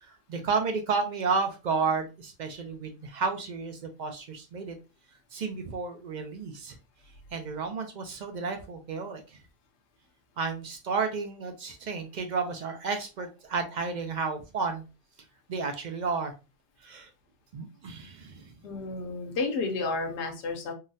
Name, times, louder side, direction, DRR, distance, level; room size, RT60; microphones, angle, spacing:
voice 1, 0.0-4.8 5.3-6.8 7.3-9.4 10.4-14.8 15.5-16.3 16.8-17.1 17.5-18.5, right 4 dB, 60° right, 6 dB, 0.4 m, -32 dB
voice 2, 18.6-20.7, left 3 dB, 70° left, 3 dB, 1.0 m, -31 dB
3.8 x 2.0 x 2.5 m, 0.30 s
omnidirectional pair, 1.3 m